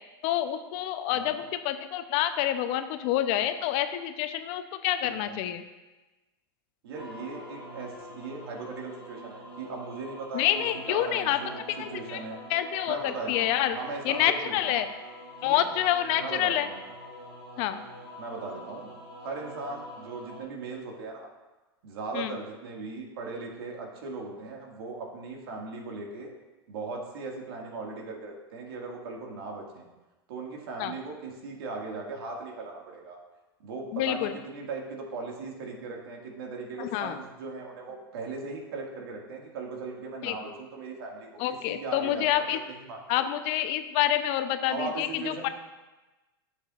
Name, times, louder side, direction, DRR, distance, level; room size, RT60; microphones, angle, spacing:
voice 1, 0.2-5.6 10.3-11.4 11.8-12.2 12.5-13.8 14.0-14.9 15.4-16.7 17.6-17.8 22.1-22.4 30.8-30.9 33.9-34.3 36.8-37.2 40.2-40.4 41.4-42.6 43.1-45.5, left 12 dB, 50° left, 10 dB, 0.7 m, -27 dB
voice 2, 5.0-5.4 6.8-12.4 12.9-14.8 15.4-15.6 16.2-16.8 18.2-18.9 19.2-21.3 21.8-26.3 26.7-29.9 30.3-33.2 33.6-41.3 41.7-43.0 44.7-45.5, right 3 dB, 70° right, 0 dB, 2.0 m, -38 dB
sound 1, 6.9-20.4, equal, 90° right, 2.5 m, -45 dB
12.0 x 7.2 x 2.5 m, 1.1 s
hypercardioid pair, 100°, 13 cm